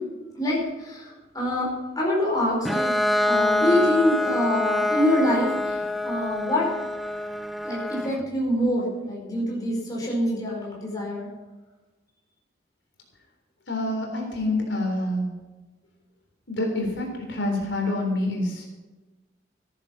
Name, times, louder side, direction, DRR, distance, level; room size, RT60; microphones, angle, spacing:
voice 1, 0.3-1.7 1.9-2.9 3.2-6.7 7.6-11.3, left 1 dB, 20° left, -4 dB, 4.7 m, -25 dB
Bowed string instrument, 2.6-8.2, left 1 dB, ahead, 0.5 m, -25 dB
voice 2, 13.7-15.3 16.5-18.7, left 1 dB, 75° left, 1 dB, 3.6 m, -27 dB
14.5 x 10.5 x 5.7 m, 1.2 s
head